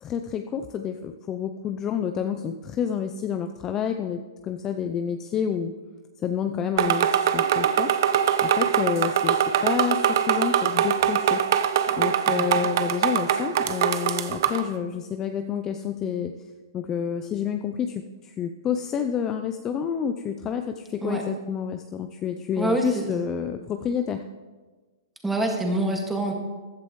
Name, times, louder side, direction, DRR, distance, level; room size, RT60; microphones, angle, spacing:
voice 1, 0.0-5.7 6.2-7.9 8.4-16.3 16.7-24.2, left 8 dB, 20° left, 7 dB, 0.5 m, -29 dB
sound 1, 6.8-14.7, right 9 dB, 60° right, 0.8 m, -23 dB
voice 2, 12.3-12.7 21.0-21.2 22.6-23.3 25.2-26.3, right 1 dB, 5° right, 1 dB, 1.9 m, -26 dB
15.0 x 11.5 x 3.1 m, 1.3 s
hypercardioid pair, 145°, 2 cm